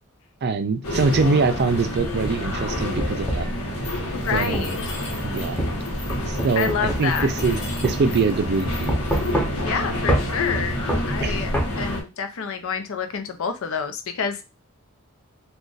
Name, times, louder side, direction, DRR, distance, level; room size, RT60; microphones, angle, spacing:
voice 1, 0.4-3.4 4.3-4.8 5.2-5.6 6.3-6.7 7.0-9.0 11.2-11.4, right 4 dB, 50° right, 9 dB, 0.4 m, -23 dB
sound 1, 0.8-12.0, left 1 dB, 85° left, 1.0 m, -28 dB
sound 2, 2.1-3.6 4.5-4.7 5.6-7.6 7.8-8.0 8.9-9.8 10.1-10.3 10.9-11.7, right 1 dB, 5° left, 0.7 m, -25 dB
Mechanisms, 3.8-9.3, left 2 dB, 35° left, 0.9 m, -38 dB
voice 2, 4.1-4.7 6.6-7.3 9.6-11.5 11.8-14.4, left 6 dB, 65° left, 7 dB, 0.6 m, -28 dB
2.4 x 2.4 x 3.8 m, 0.26 s
head